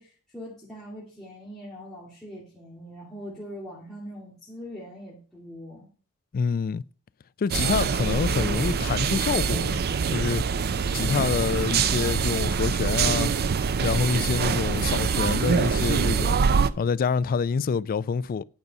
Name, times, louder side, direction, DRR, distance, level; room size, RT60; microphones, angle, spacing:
voice 1, 0.0-5.9, equal, ahead, 2.5 m, -42 dB
voice 2, 6.3-6.8 7.4-9.8 10.1-10.4 10.9-13.3 13.8-16.3 16.8-18.4, left 5 dB, 40° left, 0.3 m, -26 dB
sound 1, 7.5-16.7, right 6 dB, 45° right, 0.5 m, -24 dB
9.6 x 5.4 x 5.4 m
head